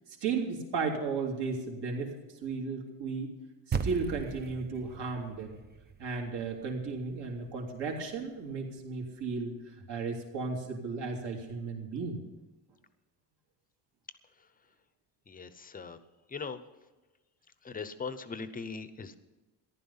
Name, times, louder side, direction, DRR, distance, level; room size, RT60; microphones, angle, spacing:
voice 1, 0.2-2.1 2.4-3.3 3.7-5.6 6.0-9.5 9.9-12.2, right 4 dB, 65° right, 0 dB, 3.0 m, -34 dB
sound 1, 3.7-8.2, right 6 dB, 25° right, 0.5 m, -39 dB
voice 2, 15.3-16.0 16.3-16.6 17.6-19.2, left 5 dB, 20° left, 12 dB, 0.7 m, -40 dB
14.5 x 11.5 x 5.6 m, 1.2 s
cardioid pair, 155°, 44 cm